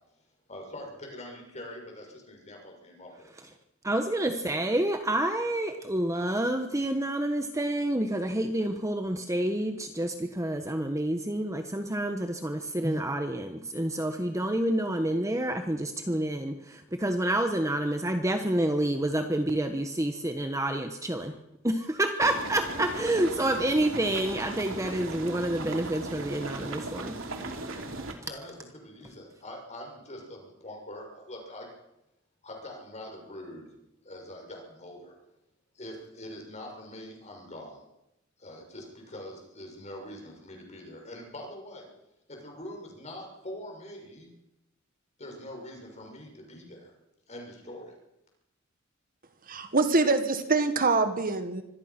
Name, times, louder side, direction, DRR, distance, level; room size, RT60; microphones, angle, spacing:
voice 1, 0.5-3.3 28.2-31.7 32.4-33.7 34.0-35.1 35.7-37.8 38.4-41.9 42.3-44.3 45.2-46.9 47.3-47.9, left 1 dB, 35° left, 1 dB, 6.7 m, -44 dB
voice 2, 3.8-21.3 21.6-27.8, right 1 dB, 15° right, 6 dB, 1.2 m, -28 dB
sound 1, 22.2-28.1, right 2 dB, 75° right, 3.0 m, -37 dB
voice 3, 49.5-51.6, right 3 dB, 45° right, 9 dB, 1.6 m, -25 dB
25.0 x 18.0 x 6.0 m, 0.88 s
head